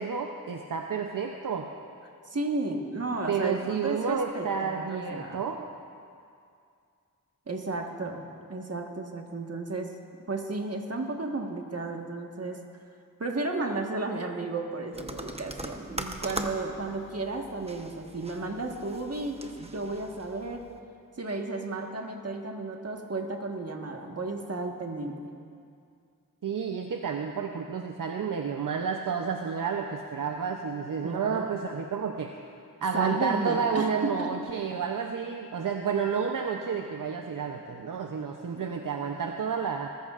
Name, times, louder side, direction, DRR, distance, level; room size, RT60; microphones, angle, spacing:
voice 1, 0.0-1.7 3.3-5.7 26.4-32.3 32.8-39.9, right 6 dB, 65° right, 3 dB, 0.7 m, -30 dB
voice 2, 2.3-5.5 7.5-9.9 10.3-12.6 13.2-20.7 21.2-25.3 31.0-31.5 32.9-34.3, right 2 dB, 45° right, 2 dB, 1.5 m, -33 dB
sound 1, 14.9-20.8, right 1 dB, 15° right, 0.9 m, -41 dB
20.5 x 14.0 x 2.5 m, 2.4 s
cardioid pair, 55°, 35 cm